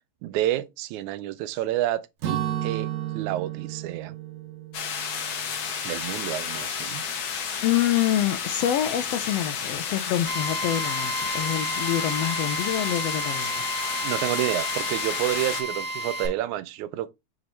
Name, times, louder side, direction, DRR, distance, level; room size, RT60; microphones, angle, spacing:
voice 1, 0.2-2.9 3.1-4.2 5.8-7.0 14.0-17.1, right 14 dB, 85° right, 2.0 m, -29 dB
Acoustic guitar / Strum, 2.2-6.2, right 11 dB, 65° right, 2.5 m, -33 dB
sound 1, 4.7-15.6, left 7 dB, 55° left, 1.5 m, -31 dB
voice 2, 7.6-13.7, left 11 dB, 75° left, 1.5 m, -26 dB
Drill, 10.3-16.3, right 1 dB, 25° left, 3.2 m, -31 dB
6.1 x 5.0 x 4.2 m
omnidirectional pair, 3.3 m